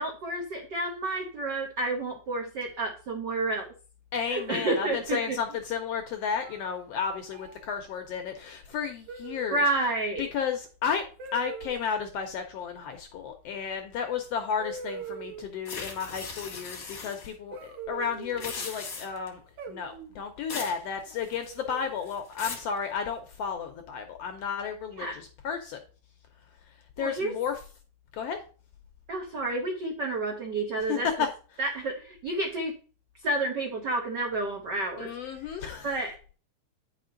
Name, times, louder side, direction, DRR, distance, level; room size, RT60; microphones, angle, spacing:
voice 1, 0.0-3.7 4.3-5.4 9.5-10.3 25.0-25.1 27.0-27.3 29.1-31.1 31.6-32.7 33.2-35.1 35.8-36.3, right 2 dB, 85° right, 2 dB, 0.9 m, -30 dB
voice 2, 4.1-9.6 10.2-11.0 11.3-19.4 19.7-25.8 27.0-27.5 28.1-28.4 30.9-31.3 35.0-35.9, left 7 dB, 75° left, 6 dB, 1.5 m, -32 dB
sound 1, 4.3-5.2 6.4-6.8 7.3-7.6 9.1-9.7 11.2-11.8 13.7-13.8 14.6-15.6 17.5-18.6 19.6-20.2 21.4-22.0, right 5 dB, 55° right, 2.0 m, -42 dB
sound 2, 15.7-17.3 18.2-19.3 20.5-20.8 21.1-21.6 22.1-22.7, left 4 dB, 45° left, 1.1 m, -38 dB
9.4 x 5.3 x 3.8 m, 0.38 s
omnidirectional pair, 3.6 m